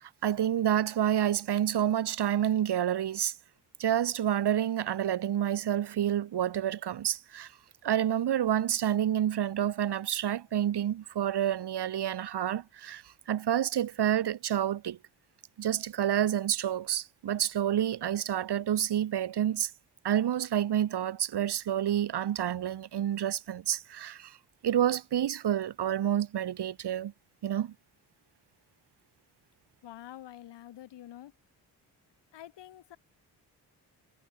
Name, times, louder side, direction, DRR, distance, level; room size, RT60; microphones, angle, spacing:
voice 1, 0.0-3.3 3.8-7.5 7.8-15.0 15.6-19.7 20.0-24.4 24.6-27.1 27.4-27.7, right 10 dB, 70° right, 2.7 m, -29 dB
voice 2, 29.8-31.3 32.3-33.0, left 12 dB, 80° left, 4.4 m, -47 dB
supercardioid pair, 55°, 41 cm